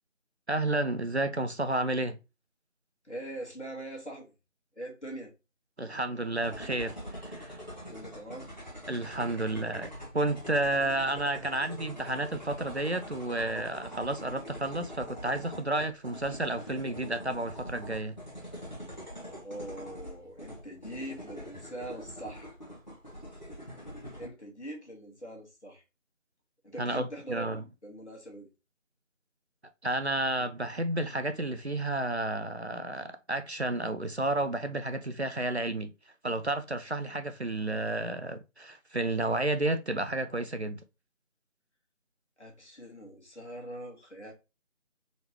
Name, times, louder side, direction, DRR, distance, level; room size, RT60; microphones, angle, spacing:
voice 1, 0.5-2.2 5.8-7.0 7.2-7.6 8.9-18.2 26.8-27.6 29.8-35.9 36.2-40.8, right 2 dB, 55° right, 0.5 m, -31 dB
voice 2, 3.0-4.3 4.7-5.3 7.9-8.5 19.4-22.5 24.1-25.8 26.6-28.5 42.4-44.3, right 1 dB, 60° left, 1.7 m, -42 dB
sound 1, 6.4-24.3, equal, 35° left, 1.3 m, -44 dB
3.9 x 3.4 x 3.0 m
figure-of-eight pair, 180°, 39 cm